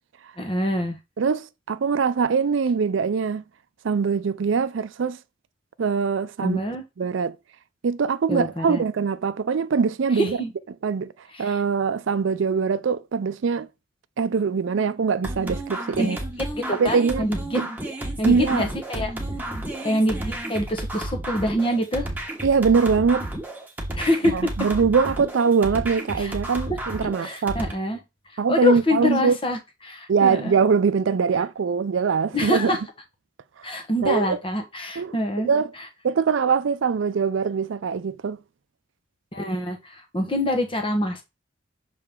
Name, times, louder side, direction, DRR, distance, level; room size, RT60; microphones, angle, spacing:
voice 1, 0.4-1.0 6.4-6.8 8.3-8.8 10.2-10.5 11.4-11.6 16.0-16.1 16.5-17.6 18.2-19.1 19.8-22.1 24.0-24.3 26.2-26.4 27.2-28.0 28.5-29.6 29.8-30.5 32.3-32.8 33.6-35.5 39.3-41.2, left 1 dB, 25° left, 1.2 m, -25 dB
voice 2, 1.2-3.4 3.8-5.2 5.8-6.6 7.0-7.4 7.8-10.4 10.8-11.1 11.4-13.7 14.2-16.2 16.8-17.3 17.6-17.7 18.2-18.7 22.4-23.3 24.2-27.6 28.4-29.4 30.1-32.7 33.7-34.4 35.0-35.7 36.0-38.4, right 5 dB, 75° right, 0.4 m, -22 dB
sound 1, 15.2-27.7, right 1 dB, 10° right, 1.4 m, -32 dB
6.7 x 4.1 x 3.7 m
head